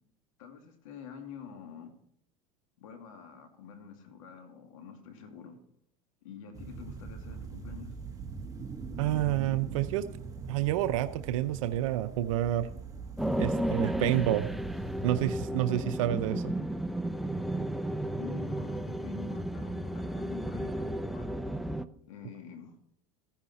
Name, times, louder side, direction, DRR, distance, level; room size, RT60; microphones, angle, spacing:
voice 1, 0.4-1.9 2.8-5.6 6.2-7.9 18.0-21.3 22.1-22.8, left 7 dB, 90° left, 5 dB, 2.4 m, -47 dB
sound 1, 6.5-15.5, right 5 dB, 20° right, 1.5 m, -42 dB
voice 2, 9.0-10.1 10.5-12.7 13.4-14.5 15.0-16.5, right 13 dB, 85° right, 10 dB, 0.6 m, -29 dB
sound 2, 13.2-21.8, right 1 dB, ahead, 0.5 m, -33 dB
14.0 x 10.5 x 4.2 m, 0.68 s
supercardioid pair, 115°, 17 cm